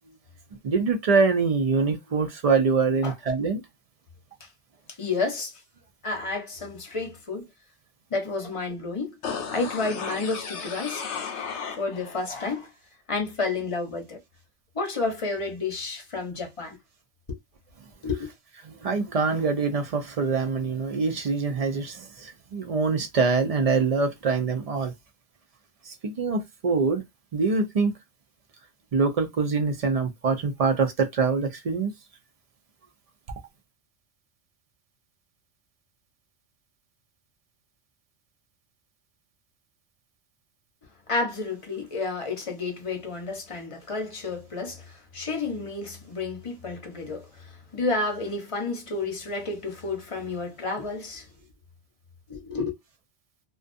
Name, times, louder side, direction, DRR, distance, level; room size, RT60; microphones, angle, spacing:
voice 1, 0.6-3.6 18.6-24.9 25.9-27.0 27.3-27.9 28.9-31.9, right 4 dB, 55° right, 0.4 m, -24 dB
voice 2, 5.0-5.5 6.0-7.5 8.1-9.1 9.5-11.0 11.8-12.7 13.1-14.2 14.7-16.8 17.3-17.4 18.0-18.3 41.1-44.8 45.1-47.3 47.7-51.3 52.3-52.7, left 3 dB, 35° left, 0.7 m, -30 dB
sound 1, 9.2-12.2 12.5-12.6, left 6 dB, 85° left, 1.0 m, -34 dB
2.4 x 2.3 x 2.5 m
omnidirectional pair, 1.1 m